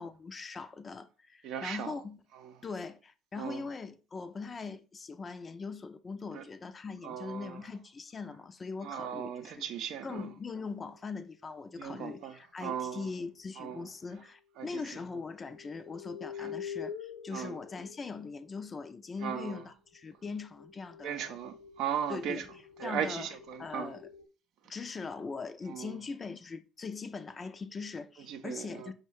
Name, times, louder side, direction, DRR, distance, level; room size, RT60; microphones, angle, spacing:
voice 1, 0.0-2.2 2.6-9.6 10.0-21.4 22.1-22.4 22.8-23.3 23.6-24.1 24.7-28.9, left 4 dB, 35° left, 0.4 m, -41 dB
voice 2, 1.4-1.9 2.3-2.5 3.4-3.6 6.3-6.4 7.0-7.6 8.8-10.3 11.8-13.1 13.6-13.9 14.6-14.8 16.4-16.5 17.3-17.6 19.2-19.6 21.0-22.4 22.8-23.9 25.7-25.9 28.3-28.9, right 8 dB, 65° right, 0.5 m, -37 dB
sound 1, 10.6-12.3 13.9-14.0 15.3-19.0 19.9-24.3, left 8 dB, 75° left, 0.8 m, -47 dB
5.2 x 2.2 x 3.2 m
hypercardioid pair, 65°, 0 cm